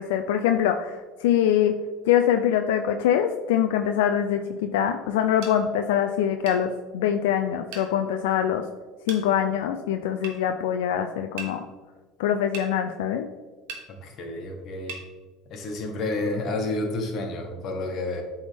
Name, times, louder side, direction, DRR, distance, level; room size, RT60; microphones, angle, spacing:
voice 1, 0.0-1.7 2.1-8.6 9.1-11.6 12.2-13.3, left 9 dB, 90° left, 6 dB, 0.3 m, -24 dB
sound 1, 5.4-5.6 6.5-6.6 7.7-7.9 9.1-9.2 10.2-10.4 11.4-11.5 12.5-12.7 13.7-13.9 14.9-15.1, right 5 dB, 75° right, 1.0 m, -37 dB
voice 2, 13.9-15.0 15.5-18.2, left 2 dB, 50° left, 3 dB, 1.2 m, -30 dB
8.0 x 3.5 x 3.3 m, 1.3 s
supercardioid pair, 110°, 0 cm